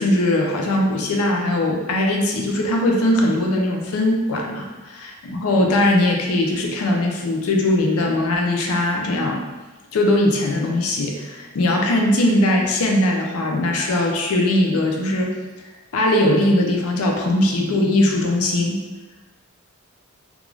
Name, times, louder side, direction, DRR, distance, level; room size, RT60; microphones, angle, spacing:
voice 1, 0.0-9.4 9.9-15.3 15.9-18.8, left 1 dB, 90° left, 1 dB, 0.4 m, -20 dB
2.4 x 2.2 x 3.1 m, 1.2 s
head